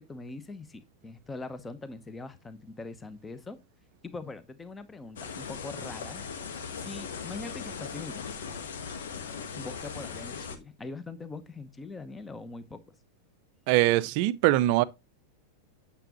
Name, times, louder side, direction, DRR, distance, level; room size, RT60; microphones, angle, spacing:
voice 1, 0.0-3.6 4.0-6.2 6.8-8.3 9.6-12.9, left 3 dB, 15° left, 0.9 m, -42 dB
sound 1, 5.2-10.6, left 6 dB, 60° left, 1.3 m, -39 dB
voice 2, 13.7-14.8, right 16 dB, 45° right, 0.5 m, -22 dB
9.0 x 7.0 x 3.0 m
figure-of-eight pair, 90°, 0 cm